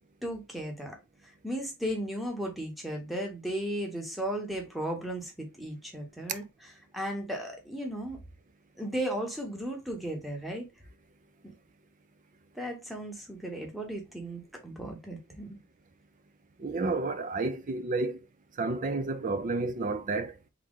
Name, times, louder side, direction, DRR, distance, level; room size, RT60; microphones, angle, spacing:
voice 1, 0.2-1.0 1.4-6.4 6.9-8.2 8.8-10.7 12.5-15.6, right 1 dB, ahead, 1.0 m, -35 dB
voice 2, 16.6-18.2 18.6-20.5, right 3 dB, 35° right, 0.5 m, -31 dB
3.7 x 3.0 x 3.7 m
head